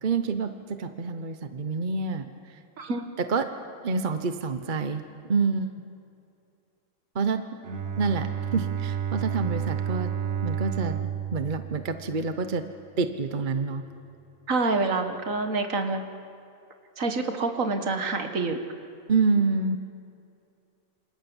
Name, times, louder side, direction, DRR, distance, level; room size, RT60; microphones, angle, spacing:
voice 1, 0.0-2.6 3.2-3.5 3.8-5.7 7.1-7.4 8.0-10.1 10.4-12.6 13.0-13.8 19.1-19.8, right 4 dB, 40° right, 8 dB, 1.1 m, -27 dB
Bowed string instrument, 7.6-12.6, right 9 dB, 55° right, 1.5 m, -31 dB
voice 2, 14.5-16.0 17.0-18.6, right 3 dB, 70° right, 6 dB, 2.1 m, -27 dB
28.0 x 26.0 x 7.2 m, 2.6 s
omnidirectional pair, 1.4 m